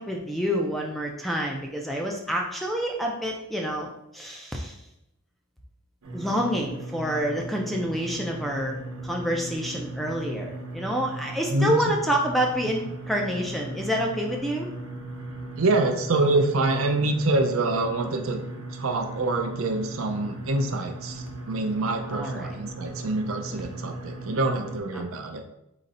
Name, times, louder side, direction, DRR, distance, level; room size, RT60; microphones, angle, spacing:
voice 1, 0.0-4.7 6.1-14.7 22.1-22.5 24.9-25.0, equal, ahead, 0 dB, 0.5 m, -28 dB
sound 1, 6.0-24.8, right 2 dB, 85° right, 1.0 m, -38 dB
voice 2, 15.6-18.4 18.7-25.4, right 2 dB, 70° right, 4 dB, 0.6 m, -26 dB
3.9 x 3.2 x 4.1 m, 0.84 s
head